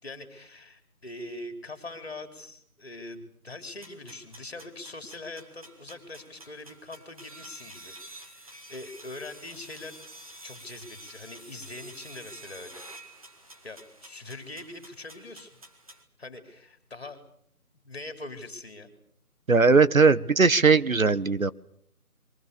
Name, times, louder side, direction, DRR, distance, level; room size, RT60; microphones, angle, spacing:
voice 1, 0.0-7.9 8.3-10.0 10.4-12.8 13.6-15.6 16.2-17.2 17.8-18.9, left 2 dB, 40° left, 9 dB, 3.8 m, -42 dB
sound 1, 3.8-16.0, right 1 dB, 25° right, 1.9 m, -49 dB
voice 2, 19.5-21.5, right 4 dB, 65° right, 15 dB, 1.2 m, -19 dB
28.5 x 23.0 x 6.9 m, 0.67 s
figure-of-eight pair, 170°, 45 cm